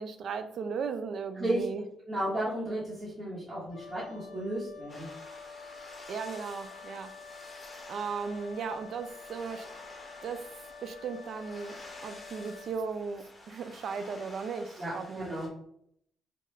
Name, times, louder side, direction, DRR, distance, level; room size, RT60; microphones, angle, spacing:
voice 1, 0.0-1.8 6.1-7.1 7.9-9.7 10.2-10.5 10.8-15.4, right 5 dB, 60° right, 9 dB, 0.3 m, -36 dB
voice 2, 2.1-5.1 14.8-15.5, right 1 dB, 25° right, -9 dB, 1.1 m, -33 dB
Wind instrument woodwind instrument, 3.7-12.8, left 5 dB, 75° left, 0.4 m, -48 dB
sound 1, 4.9-15.5, left 1 dB, 30° left, 0.8 m, -51 dB
2.9 x 2.3 x 3.2 m, 0.71 s
cardioid pair, 90°, 0 cm